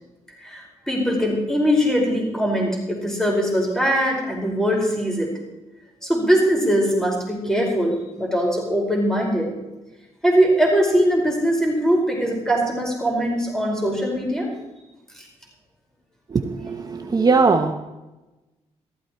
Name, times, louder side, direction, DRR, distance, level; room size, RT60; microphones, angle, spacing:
voice 1, 0.4-5.3 6.0-9.5 10.2-14.5, equal, 5° left, -1 dB, 4.9 m, -21 dB
voice 2, 16.3-17.7, right 4 dB, 35° right, 5 dB, 1.0 m, -20 dB
15.5 x 14.0 x 4.5 m, 1.0 s
cardioid pair, 105°, 12 cm